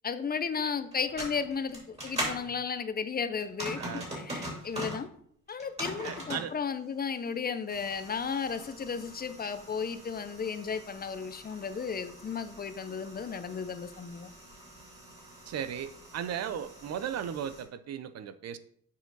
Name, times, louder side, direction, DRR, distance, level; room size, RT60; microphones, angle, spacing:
voice 1, 0.0-3.8 4.1-5.1 5.5-14.3, left 6 dB, 30° left, 11 dB, 0.5 m, -34 dB
sound 1, 0.9-2.4 3.4-5.0 5.5-6.5 7.7-17.6, equal, 20° right, 2.9 m, -42 dB
voice 2, 6.0-6.5 15.5-18.6, right 9 dB, 60° right, 13 dB, 0.5 m, -36 dB
7.1 x 4.5 x 3.9 m, 0.64 s
cardioid pair, 90°, 30 cm